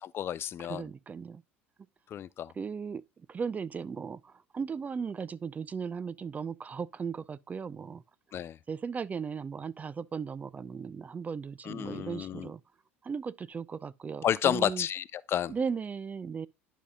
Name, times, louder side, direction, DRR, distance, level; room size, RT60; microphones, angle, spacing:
voice 1, 0.0-0.9 2.1-2.5 8.3-8.6 11.6-12.5 14.2-15.6, left 10 dB, 35° left, 0.4 m, -31 dB
voice 2, 0.7-1.4 2.5-3.0 3.3-8.0 8.7-12.6 13.0-14.9 15.5-16.5, right 6 dB, 25° right, 0.4 m, -36 dB
11.0 x 5.5 x 2.3 m
figure-of-eight pair, 70°, 7 cm